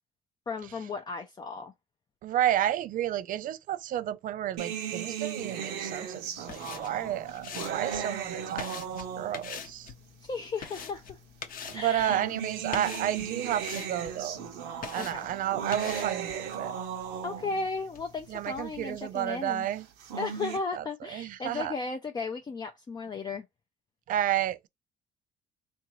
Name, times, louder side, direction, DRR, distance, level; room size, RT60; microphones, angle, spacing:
voice 1, 0.5-1.7 10.2-11.2 11.7-12.3 15.0-15.3 17.2-19.7 20.2-23.4, left 4 dB, 25° left, 0.4 m, -35 dB
voice 2, 2.2-9.9 11.7-14.4 14.9-16.7 18.3-19.8 20.7-20.8 21.1-21.7 24.1-24.7, right 11 dB, 55° right, 0.4 m, -31 dB
sound 1, 4.6-9.7 10.6-10.7 11.8-17.7 19.8-20.6, right 8 dB, 90° right, 0.8 m, -36 dB
sound 2, 6.4-19.0, left 7 dB, 55° left, 0.7 m, -45 dB
3.6 x 2.6 x 3.0 m
cardioid pair, 110°, 17 cm